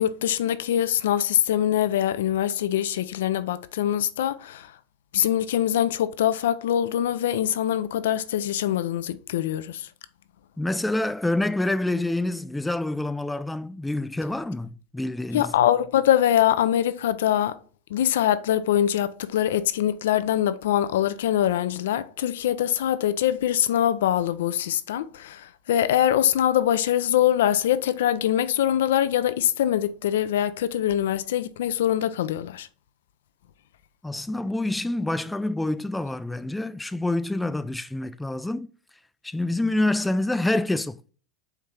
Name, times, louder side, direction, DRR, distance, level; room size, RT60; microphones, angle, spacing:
voice 1, 0.0-4.8 5.1-9.9 15.3-17.6 17.9-32.7, left 11 dB, 80° left, 0.4 m, -23 dB
voice 2, 10.6-15.5 34.0-38.7 39.2-41.1, left 2 dB, 5° left, 0.3 m, -27 dB
4.5 x 2.8 x 3.6 m
hypercardioid pair, 105°, 0 cm